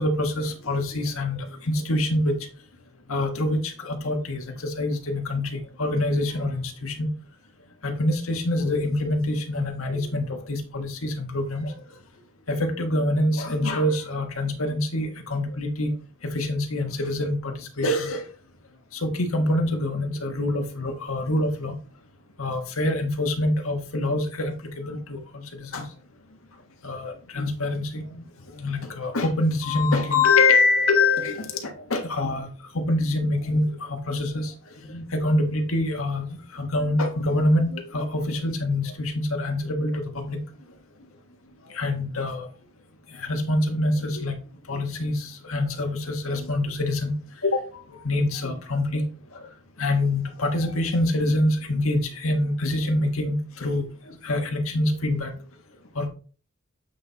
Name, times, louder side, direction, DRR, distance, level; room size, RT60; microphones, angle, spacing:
voice 1, 0.0-2.3 3.1-7.1 7.8-11.7 12.5-15.9 16.3-18.3 18.9-21.7 22.4-25.8 26.8-28.2 28.5-32.5 32.7-40.4 41.7-42.5 43.2-44.3 44.7-47.1 47.4-47.7 48.0-49.0 49.4-49.5 49.8-53.8 54.2-55.3 55.9-56.1, left 2 dB, 85° left, 4 dB, 1.5 m, -25 dB
8.5 x 4.2 x 4.0 m, 0.38 s
head